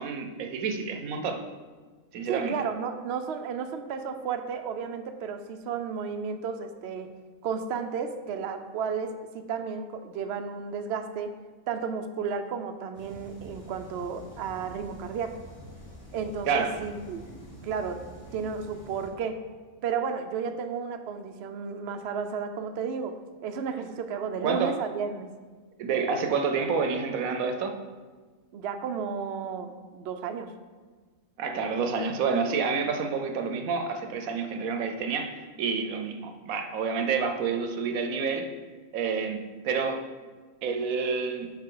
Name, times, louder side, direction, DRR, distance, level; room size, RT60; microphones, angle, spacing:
voice 1, 0.0-1.4 2.1-2.6 16.5-16.8 24.4-24.8 25.8-27.8 31.4-38.5 38.9-40.0 40.6-41.5, right 5 dB, 75° right, 7 dB, 1.1 m, -29 dB
voice 2, 2.3-7.1 7.4-11.3 11.7-15.4 16.1-17.2 17.6-19.4 19.8-25.3 28.5-30.5, right 6 dB, 60° right, 7 dB, 0.7 m, -33 dB
sound 1, 12.9-19.1, equal, 65° left, 2.6 m, -47 dB
10.5 x 5.2 x 3.8 m, 1.4 s
omnidirectional pair, 1.5 m